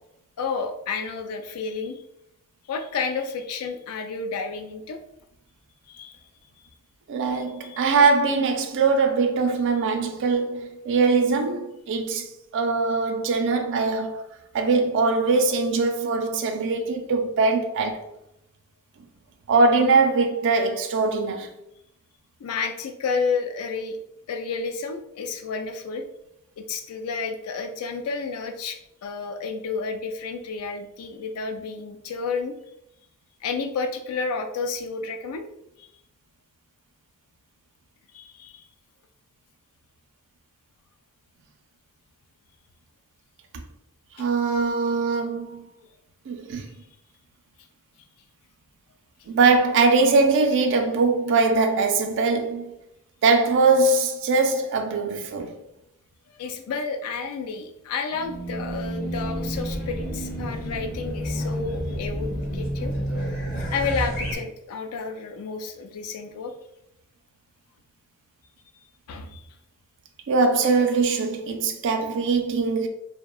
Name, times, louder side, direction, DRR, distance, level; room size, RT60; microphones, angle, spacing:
voice 1, 0.4-2.0 2.7-5.0 5.9-6.2 7.3-7.8 22.4-24.0 24.3-26.0 26.6-32.5 33.4-35.5 35.8-35.9 38.1-38.6 44.2-44.3 56.3-62.9 63.7-66.5 69.1-69.5, left 4 dB, 80° left, 0.3 m, -31 dB
voice 2, 7.1-14.2 14.5-18.1 19.5-21.5 44.2-45.7 46.3-46.7 49.3-52.7 53.2-55.5 70.3-72.9, right 4 dB, 55° right, 0.3 m, -22 dB
Race car auto racing / Alarm, 58.1-64.4, equal, 40° left, 0.7 m, -30 dB
2.6 x 2.2 x 2.2 m
head